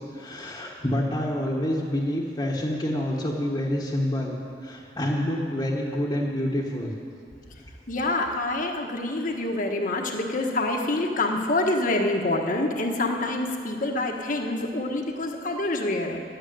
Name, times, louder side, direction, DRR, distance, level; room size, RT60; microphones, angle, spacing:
voice 1, 0.1-4.3 4.6-6.9, left 1 dB, 25° left, -5 dB, 1.4 m, -27 dB
voice 2, 7.9-16.2, left 2 dB, 50° left, 2 dB, 1.4 m, -26 dB
11.5 x 9.1 x 9.3 m, 2.3 s
head